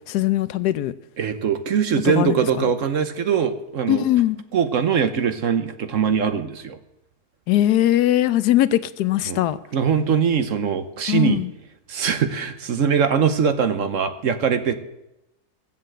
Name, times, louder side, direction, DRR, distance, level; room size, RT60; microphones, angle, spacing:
voice 1, 0.1-0.9 2.2-2.4 3.9-4.4 7.5-9.6 11.1-11.5, left 13 dB, 80° left, 15 dB, 1.2 m, -20 dB
voice 2, 1.2-4.0 4.5-6.8 9.3-9.5 9.7-11.4 11.9-14.7, right 7 dB, 60° right, 9 dB, 1.1 m, -22 dB
15.5 x 7.5 x 7.7 m, 0.92 s
omnidirectional pair, 1.7 m